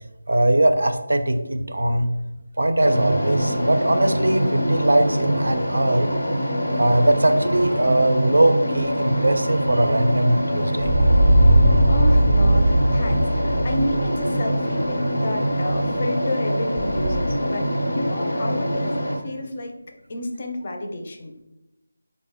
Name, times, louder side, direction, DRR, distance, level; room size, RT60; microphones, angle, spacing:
voice 1, 0.3-2.2 2.6-6.1 6.7-10.9, right 1 dB, 85° right, 8 dB, 0.4 m, -20 dB
sound 1, 2.8-19.2, equal, 90° left, 0.9 m, -24 dB
sound 2, 10.8-14.1 14.5-15.4 15.7-15.8 16.8-17.2, right 1 dB, 15° right, 0.5 m, -19 dB
voice 2, 11.9-19.0 19.2-21.3, left 1 dB, 35° left, 3 dB, 0.4 m, -30 dB
3.4 x 2.0 x 3.5 m, 0.96 s
figure-of-eight pair, 170°, 0 cm